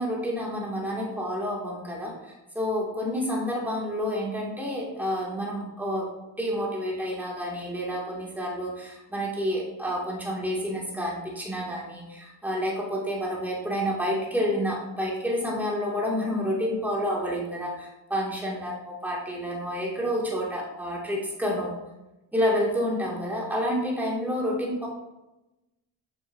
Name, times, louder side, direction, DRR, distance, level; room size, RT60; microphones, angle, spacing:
voice 1, 0.0-6.1 6.4-21.8 22.3-24.9, equal, 5° right, -4 dB, 2.4 m, -29 dB
6.9 x 6.8 x 2.7 m, 0.97 s
cardioid pair, 50°, 48 cm